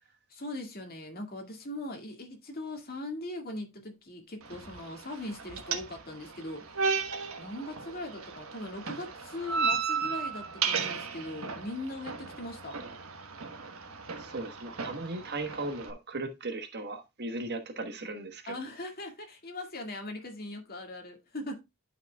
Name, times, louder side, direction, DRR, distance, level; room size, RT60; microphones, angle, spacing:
voice 1, 0.3-6.8 7.4-12.8 18.5-21.6, left 1 dB, 45° left, 2.0 m, -40 dB
sound 1, 4.4-15.9, right 5 dB, 85° right, 1.2 m, -35 dB
voice 2, 14.2-18.4, right 2 dB, 50° right, 1.3 m, -37 dB
11.5 x 5.4 x 2.3 m
head